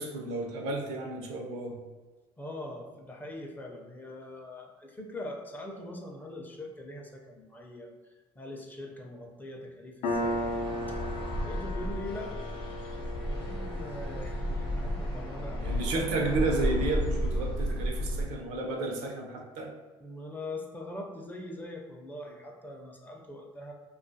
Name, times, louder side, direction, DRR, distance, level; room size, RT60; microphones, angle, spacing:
voice 1, 0.0-1.8 15.6-19.7, right 3 dB, 80° right, 1 dB, 0.5 m, -32 dB
voice 2, 2.4-10.6 10.9-11.0 11.4-12.4 13.1-16.1 20.0-23.7, left 1 dB, 15° left, 0 dB, 0.4 m, -42 dB
Piano, 10.0-17.2, left 1 dB, 70° left, 0.5 m, -37 dB
sound 1, 10.1-18.3, equal, 40° left, 0.7 m, -33 dB
2.4 x 2.3 x 2.6 m, 1.3 s
supercardioid pair, 95°, 12 cm